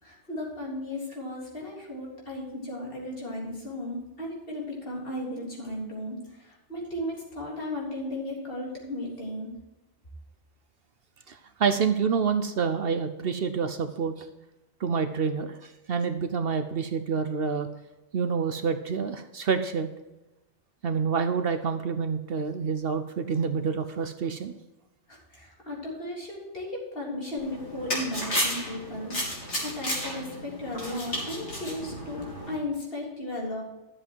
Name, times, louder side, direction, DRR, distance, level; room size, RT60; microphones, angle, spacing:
voice 1, 0.0-9.5 25.1-29.4 29.6-33.6, left 1 dB, 50° left, -4 dB, 3.7 m, -35 dB
voice 2, 11.3-14.3 14.8-17.7 18.1-19.9 20.8-24.5, right 6 dB, 60° right, 9 dB, 0.9 m, -28 dB
sound 1, 27.4-32.6, equal, 70° left, 3.9 m, -33 dB
12.0 x 7.7 x 4.5 m, 1.0 s
omnidirectional pair, 1.2 m